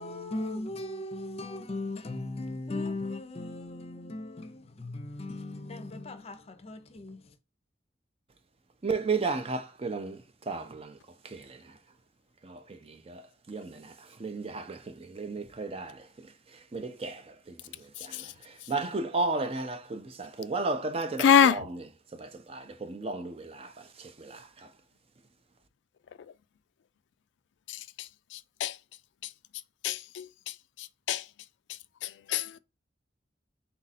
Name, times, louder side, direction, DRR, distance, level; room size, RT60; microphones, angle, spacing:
voice 1, 0.0-7.2, left 2 dB, 35° left, 0.6 m, -37 dB
voice 2, 8.8-10.2 10.5-10.9 11.3-11.4 12.4-12.8 13.1-13.2 13.5-13.9 14.2-16.0 16.7-17.2 18.0-18.1 18.7-21.8 22.2-23.7 24.2-24.4, right 3 dB, 35° right, 0.5 m, -33 dB
voice 3, 21.2-21.6 28.6-28.7 29.8-30.2 31.1-31.2 32.3-32.6, left 8 dB, 85° left, 0.3 m, -22 dB
4.1 x 2.5 x 4.0 m
head